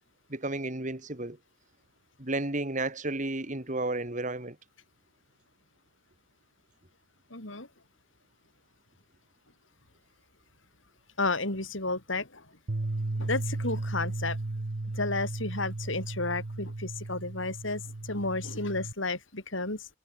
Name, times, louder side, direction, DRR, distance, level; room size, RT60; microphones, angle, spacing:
voice 1, 0.3-1.4 2.2-4.6, right 2 dB, 40° right, 2.2 m, -32 dB
voice 2, 7.3-7.7 11.2-12.4 13.2-14.4 14.9-19.9, left 3 dB, 70° left, 5.1 m, -32 dB
Bass guitar, 12.7-18.9, right 2 dB, 75° right, 1.1 m, -35 dB
head